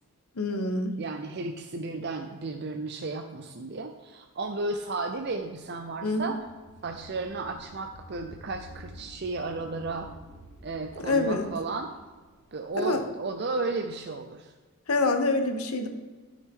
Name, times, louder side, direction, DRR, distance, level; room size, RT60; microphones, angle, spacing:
voice 1, 0.4-1.0 6.0-6.3 11.0-11.5 12.8-13.0 14.9-15.9, left 2 dB, 90° left, 5 dB, 1.2 m, -26 dB
voice 2, 1.0-6.4 6.8-10.1 10.6-11.9 12.5-14.5, right 3 dB, 50° right, 4 dB, 0.6 m, -34 dB
sound 1, 4.6-13.6, equal, 35° left, 2.2 m, -50 dB
13.0 x 6.5 x 3.7 m, 1.3 s
head